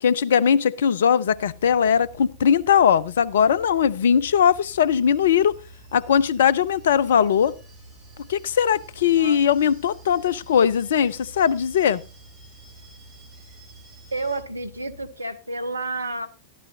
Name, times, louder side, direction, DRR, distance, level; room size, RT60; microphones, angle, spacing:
voice 1, 0.0-5.5 5.9-7.5 8.3-12.0, left 8 dB, 60° left, 21 dB, 0.5 m, -20 dB
sound 1, 1.3-15.1, right 2 dB, 60° right, 3.4 m, -48 dB
sound 2, 4.5-14.4, right 2 dB, 40° right, 7.3 m, -56 dB
voice 2, 14.1-16.3, right 2 dB, 80° right, 10 dB, 0.8 m, -30 dB
14.0 x 12.5 x 2.7 m, 0.30 s
figure-of-eight pair, 90°, 0 cm